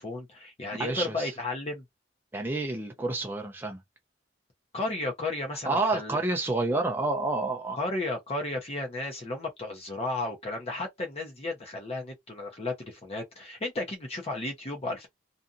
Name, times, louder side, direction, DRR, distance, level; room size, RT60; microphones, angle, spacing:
voice 1, 0.0-1.8 4.7-6.2 7.7-15.1, left 2 dB, 35° left, 0.8 m, -33 dB
voice 2, 0.8-1.3 2.3-3.8 5.7-7.8, right 2 dB, 10° right, 0.5 m, -29 dB
2.6 x 2.5 x 2.4 m
head